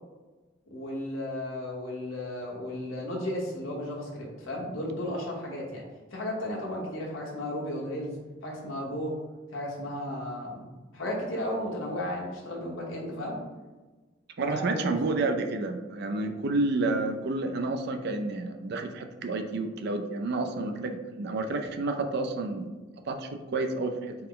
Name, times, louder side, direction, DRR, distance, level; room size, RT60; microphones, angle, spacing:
voice 1, 0.7-5.8 6.1-8.2 8.4-9.1 9.5-10.6 10.9-13.4 14.4-14.9, left 1 dB, 90° left, -3 dB, 1.1 m, -34 dB
voice 2, 14.4-22.7 23.1-24.1, right 2 dB, 55° right, 6 dB, 0.4 m, -30 dB
4.4 x 2.1 x 3.8 m, 1.2 s
head